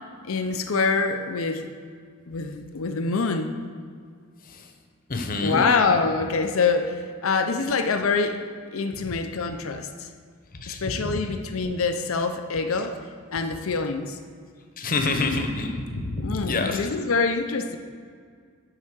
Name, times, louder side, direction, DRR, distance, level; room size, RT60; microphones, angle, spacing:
voice 1, 0.2-1.7 2.3-3.6 5.4-8.4 8.7-10.1 10.7-13.0 13.3-14.2 16.2-17.8, left 4 dB, 70° left, 7 dB, 0.6 m, -25 dB
voice 2, 5.1-5.7 10.6-11.2 14.8-16.8, left 3 dB, 40° left, 5 dB, 1.0 m, -27 dB
7.9 x 5.6 x 7.3 m, 2.1 s
head